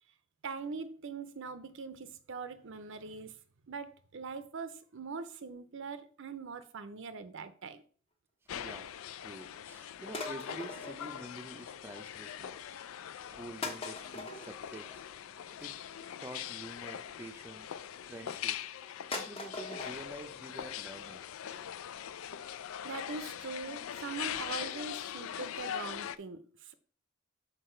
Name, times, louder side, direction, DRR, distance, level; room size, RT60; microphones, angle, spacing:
voice 1, 0.4-3.4 3.7-7.8 22.8-26.7, right 4 dB, 60° right, 0.6 m, -42 dB
sound 1, 8.5-26.2, left 10 dB, 70° left, 0.4 m, -42 dB
voice 2, 8.5-8.9 9.2-12.6 13.1-15.0 15.6-15.7 16.2-17.8 18.0-18.6 19.1-21.2, right 1 dB, 10° right, 0.6 m, -48 dB
sound 2, 10.1-11.8 12.1-12.6 13.2-13.3 13.6-17.2 17.9-18.4 18.8-18.9 19.1-20.0 20.3-20.4 20.7-20.8 21.1-21.2 21.5-21.6 22.0-22.1 22.3-22.4 22.8-22.9 23.2-23.3, left 3 dB, 25° left, 1.1 m, -43 dB
6.7 x 4.7 x 4.4 m
head